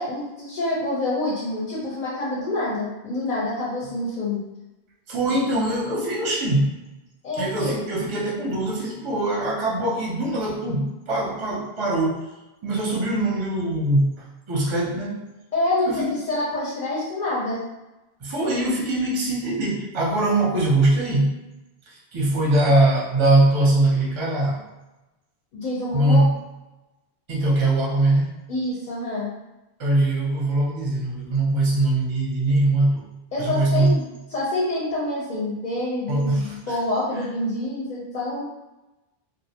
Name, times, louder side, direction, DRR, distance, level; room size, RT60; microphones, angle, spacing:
voice 1, 0.0-4.4 5.3-5.4 7.2-7.7 15.5-17.6 25.5-26.2 28.5-29.3 33.3-38.4, left 1 dB, 50° left, -6 dB, 0.6 m, -27 dB
voice 2, 5.1-6.7 7.4-12.3 12.6-15.2 15.9-16.1 18.2-21.4 21.9-24.6 25.9-26.4 27.3-28.4 29.8-33.1 33.4-34.0 36.1-36.7, right 2 dB, 35° right, -4 dB, 0.5 m, -22 dB
2.4 x 2.0 x 2.7 m, 1.0 s
omnidirectional pair, 1.0 m